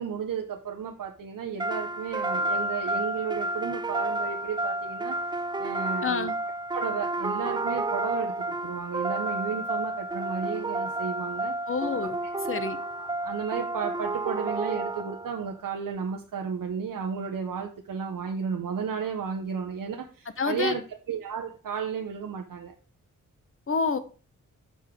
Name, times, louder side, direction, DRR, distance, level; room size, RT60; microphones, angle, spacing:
voice 1, 0.0-6.3 6.7-11.6 12.8-22.7, right 7 dB, 80° right, 0.8 m, -33 dB
sound 1, 1.6-15.5, right 2 dB, 15° right, 0.4 m, -31 dB
voice 2, 6.0-6.3 11.7-12.2 12.5-12.8 20.4-20.7 23.7-24.0, left 5 dB, 40° left, 0.9 m, -27 dB
6.9 x 5.3 x 4.5 m
wide cardioid pair, 120°, 32 cm